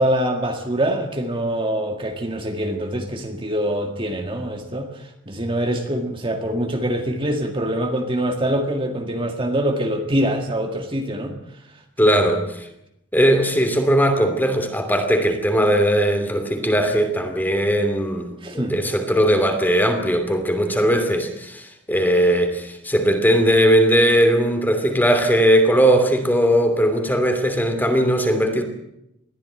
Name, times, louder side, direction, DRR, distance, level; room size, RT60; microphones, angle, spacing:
voice 1, 0.0-4.9 5.3-11.3 12.0-12.3 18.4-18.8, right 1 dB, 25° right, 4 dB, 2.0 m, -24 dB
voice 2, 12.0-12.7 13.1-28.6, equal, 10° left, 7 dB, 2.8 m, -19 dB
21.5 x 15.0 x 9.0 m, 0.84 s
head